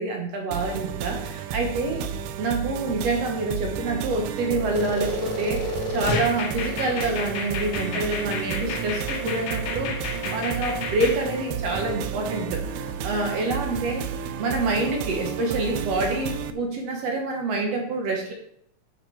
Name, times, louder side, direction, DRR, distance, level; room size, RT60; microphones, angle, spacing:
voice 1, 0.0-2.1 2.4-10.0 10.2-14.0 14.4-18.3, right 2 dB, 65° right, 1 dB, 1.8 m, -27 dB
sound 1, 0.5-16.5, right 7 dB, 90° right, 1.6 m, -32 dB
sound 2, 4.7-11.2, left 3 dB, 75° left, 2.8 m, -31 dB
9.0 x 6.0 x 4.5 m, 0.70 s
omnidirectional pair, 4.1 m